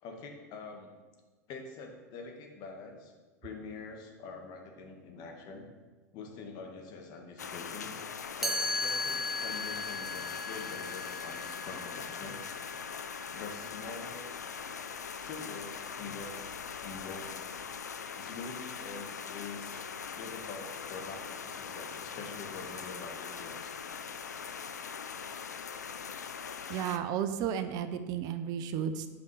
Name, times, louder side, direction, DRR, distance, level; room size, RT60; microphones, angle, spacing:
voice 1, 0.0-0.9 1.5-3.1 3.4-5.7 6.1-7.9 8.4-12.4 13.3-14.3 15.2-16.4 16.8-17.3 18.1-19.8 20.2-23.7, left 4 dB, 50° left, 2 dB, 1.6 m, -45 dB
sound 1, 7.4-27.0, left 6 dB, 90° left, 0.4 m, -41 dB
Chime, 8.4-14.3, left 2 dB, 5° right, 1.2 m, -37 dB
voice 2, 26.7-29.1, right 8 dB, 50° right, 10 dB, 0.6 m, -33 dB
8.5 x 5.1 x 4.7 m, 1.3 s
hypercardioid pair, 90°, 9 cm